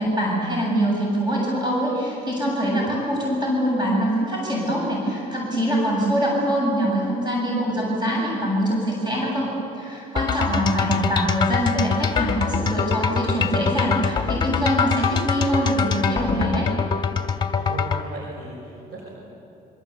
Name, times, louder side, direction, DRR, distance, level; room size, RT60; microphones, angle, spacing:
voice 1, 0.0-16.7, equal, 25° right, -2 dB, 7.7 m, -24 dB
sound 1, 10.2-18.0, left 6 dB, 25° left, 2.1 m, -24 dB
voice 2, 17.5-19.1, right 3 dB, 80° right, -1 dB, 6.0 m, -36 dB
26.5 x 24.0 x 8.5 m, 2.7 s
cardioid pair, 110°, 17 cm